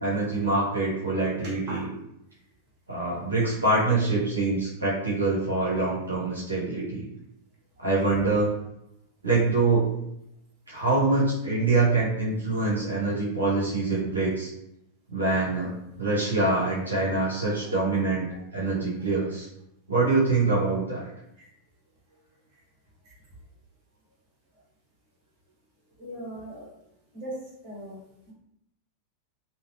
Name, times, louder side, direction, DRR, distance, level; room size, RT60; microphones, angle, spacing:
voice 1, 0.0-1.9 2.9-7.1 7.8-8.5 9.2-9.9 10.7-14.5 15.1-15.7 16.0-18.3 18.5-19.5 19.9-21.1, right 3 dB, 80° right, -7 dB, 0.7 m, -25 dB
voice 2, 26.0-26.7 27.1-27.3 27.6-28.0, right 1 dB, 40° right, -5 dB, 1.0 m, -38 dB
2.7 x 2.0 x 2.6 m, 0.82 s
figure-of-eight pair, 90°, 0 cm